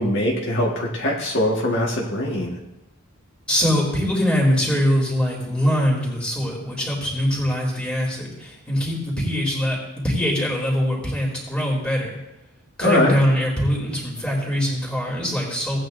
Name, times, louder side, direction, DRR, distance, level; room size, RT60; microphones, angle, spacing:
voice 1, 0.0-2.6 12.8-13.2, left 1 dB, 55° left, -3 dB, 1.7 m, -22 dB
voice 2, 3.5-9.8 10.0-12.1 12.8-15.8, equal, 5° left, -3 dB, 3.1 m, -22 dB
17.5 x 9.2 x 2.7 m, 0.92 s
head